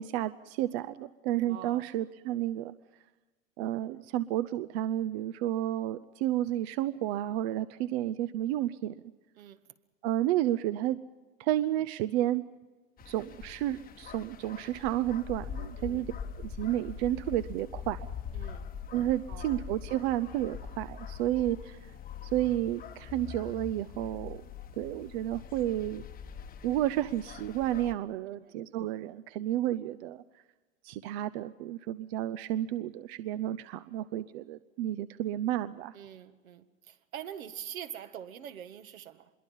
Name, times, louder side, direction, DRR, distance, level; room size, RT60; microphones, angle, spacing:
voice 1, 0.0-2.7 3.6-8.9 10.0-11.0 11.4-12.4 13.1-16.1 16.4-18.1 18.9-21.8 22.2-24.4 24.8-26.1 26.6-30.2 30.8-35.9, right 13 dB, 50° right, 0.8 m, -31 dB
voice 2, 1.4-1.9 9.4-9.7 15.8-16.2 18.3-18.7 19.3-19.6 28.3-28.6 35.9-39.3, right 10 dB, 75° right, 1.8 m, -45 dB
sound 1, 13.0-27.9, left 7 dB, 20° left, 1.2 m, -43 dB
25.5 x 22.5 x 5.5 m
hypercardioid pair, 120°, 41 cm